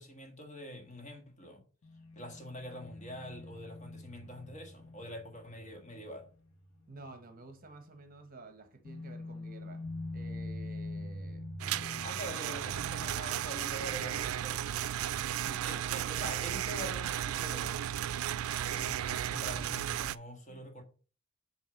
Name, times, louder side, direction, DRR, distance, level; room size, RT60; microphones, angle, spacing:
voice 1, 0.0-1.6 2.1-6.3 12.0-14.7 15.6-17.7 18.6-20.8, equal, 35° left, 1.6 m, -45 dB
sound 1, 1.8-7.2 7.5-7.7 8.8-15.4, left 1 dB, 80° left, 1.3 m, -45 dB
voice 2, 6.9-9.9 10.1-11.5 15.4-15.9 20.5-20.7, right 2 dB, 40° right, 1.1 m, -52 dB
sound 2, 11.6-20.2, right 11 dB, 90° right, 0.3 m, -34 dB
8.1 x 3.2 x 5.9 m
head